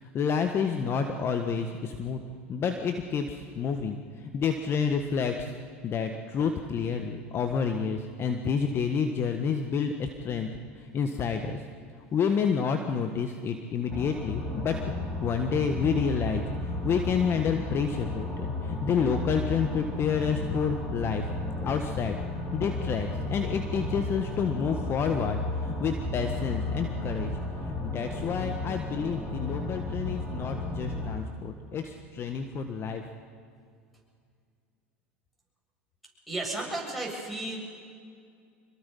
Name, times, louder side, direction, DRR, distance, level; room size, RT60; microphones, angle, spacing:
voice 1, 0.0-2.2 2.5-5.5 5.8-10.5 10.7-11.6 12.1-21.3 21.6-22.2 22.5-27.3 27.6-33.0, left 6 dB, 35° left, 6 dB, 1.6 m, -29 dB
sound 1, 13.9-31.2, left 2 dB, 20° left, 7.5 m, -33 dB
voice 2, 36.3-37.6, right 2 dB, ahead, -3 dB, 7.9 m, -33 dB
26.5 x 22.5 x 5.6 m, 2.2 s
hypercardioid pair, 90°, 7 cm